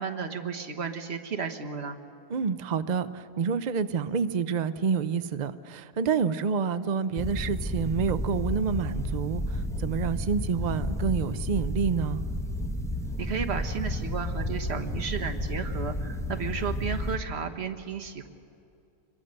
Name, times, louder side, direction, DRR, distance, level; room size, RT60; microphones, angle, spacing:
voice 1, 0.0-2.0 13.2-18.3, right 6 dB, 45° right, 5 dB, 1.4 m, -33 dB
voice 2, 2.3-12.2, right 6 dB, 85° right, 12 dB, 0.3 m, -28 dB
sound 1, 7.2-17.2, left 1 dB, ahead, 0.8 m, -32 dB
27.0 x 22.0 x 6.5 m, 2.6 s
omnidirectional pair, 1.7 m